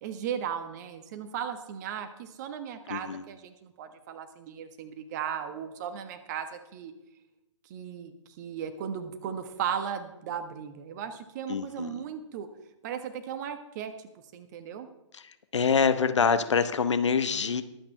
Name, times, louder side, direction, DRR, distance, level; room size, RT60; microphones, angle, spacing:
voice 1, 0.0-6.9 7.6-12.5 12.8-13.9 14.3-14.9, right 8 dB, 35° right, 10 dB, 1.3 m, -36 dB
voice 2, 2.9-3.2 11.5-12.0 15.1-15.2 15.5-17.6, left 5 dB, 65° left, 11 dB, 1.0 m, -25 dB
21.5 x 8.7 x 3.3 m, 0.91 s
figure-of-eight pair, 125°, 16 cm